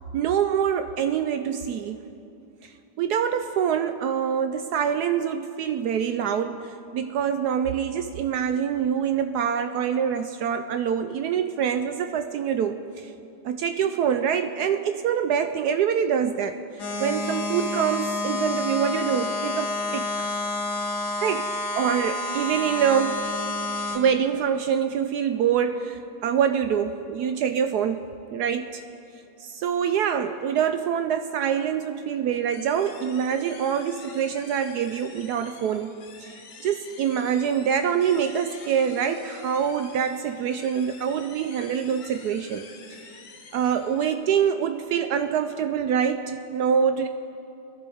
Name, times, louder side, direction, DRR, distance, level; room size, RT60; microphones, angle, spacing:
voice 1, 0.1-2.0 3.0-13.1 13.4-16.6 17.0-20.3 21.2-23.3 23.9-28.0 28.3-28.8 29.4-35.9 36.2-42.7 43.0-43.1 43.5-47.1, right 8 dB, 80° right, 8 dB, 0.8 m, -25 dB
sound 1, 16.8-24.0, left 2 dB, 70° left, 2.4 m, -29 dB
sound 2, 32.5-44.1, left 5 dB, 55° left, 1.4 m, -47 dB
22.0 x 14.5 x 3.5 m, 2.7 s
omnidirectional pair, 2.2 m